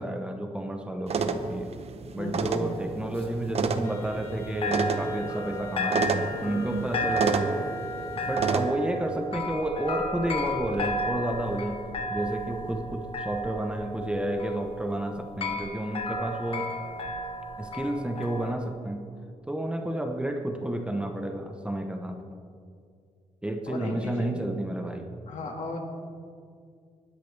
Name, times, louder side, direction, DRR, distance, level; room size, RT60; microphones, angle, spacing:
voice 1, 0.0-1.8 2.1-7.7 8.3-16.7 17.6-19.1 19.5-22.4 23.4-25.1, right 1 dB, 10° right, 3 dB, 0.9 m, -31 dB
sound 1, 1.1-8.7, right 5 dB, 50° right, 0.8 m, -30 dB
voice 2, 2.2-2.5 23.7-24.3 25.3-25.8, left 3 dB, 65° left, 2 dB, 1.8 m, -35 dB
sound 2, 2.4-4.4 4.6-18.5, left 1 dB, 45° left, 1.2 m, -34 dB
Wind instrument woodwind instrument, 3.8-8.7, left 4 dB, 30° left, 2.1 m, -42 dB
20.5 x 10.0 x 3.4 m, 2.2 s
wide cardioid pair, 145°, 13 cm